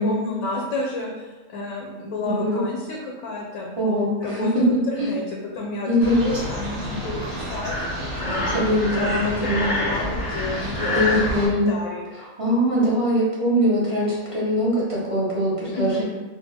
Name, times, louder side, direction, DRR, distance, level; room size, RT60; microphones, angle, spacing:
voice 1, 0.0-3.7 4.2-7.7 8.3-12.1 15.7-16.0, left 2 dB, 75° left, -1 dB, 1.0 m, -30 dB
voice 2, 2.2-2.6 3.8-4.6 5.0-5.1 5.9-6.2 8.5-9.7 10.9-11.7 12.2-16.0, equal, 30° right, -8 dB, 0.7 m, -22 dB
sound 1, 6.0-11.5, equal, 50° right, 1.2 m, -31 dB
Breathing, 7.6-11.3, left 2 dB, 25° left, 0.5 m, -27 dB
3.2 x 2.4 x 3.4 m, 1.2 s
omnidirectional pair, 1.5 m